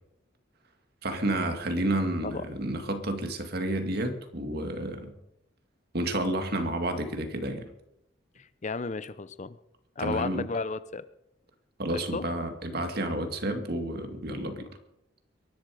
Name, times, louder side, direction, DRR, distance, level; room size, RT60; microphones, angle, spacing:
voice 1, 1.0-5.1 5.9-7.7 10.0-10.5 11.8-14.7, right 1 dB, 55° right, 6 dB, 2.2 m, -30 dB
voice 2, 8.4-9.6 10.0-11.0 11.9-12.2, left 4 dB, 40° left, 15 dB, 0.6 m, -33 dB
23.0 x 11.5 x 4.9 m, 0.84 s
head